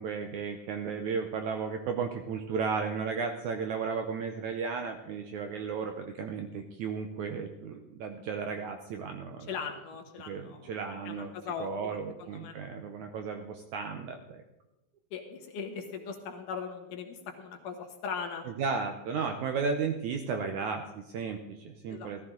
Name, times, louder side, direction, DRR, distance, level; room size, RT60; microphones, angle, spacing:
voice 1, 0.0-9.6 10.3-11.3 11.6-14.4 18.5-22.2, right 5 dB, 75° right, 5 dB, 1.8 m, -34 dB
voice 2, 9.5-10.7 11.0-12.5 15.1-18.4 21.9-22.2, left 6 dB, 70° left, 4 dB, 2.7 m, -39 dB
16.0 x 13.5 x 3.8 m, 0.95 s
omnidirectional pair, 4.2 m